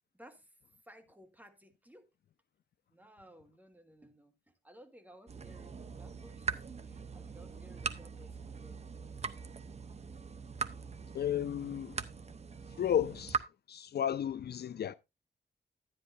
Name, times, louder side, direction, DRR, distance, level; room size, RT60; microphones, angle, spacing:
voice 1, 0.1-0.5 0.8-2.1 2.9-6.5 6.8-9.1, equal, 10° right, 1.4 m, -58 dB
sound 1, 5.3-13.4, right 5 dB, 35° right, 0.7 m, -41 dB
voice 2, 11.1-12.0 12.8-13.4 13.7-14.9, left 10 dB, 65° left, 0.4 m, -33 dB
10.5 x 10.0 x 2.6 m
wide cardioid pair, 115°, 18 cm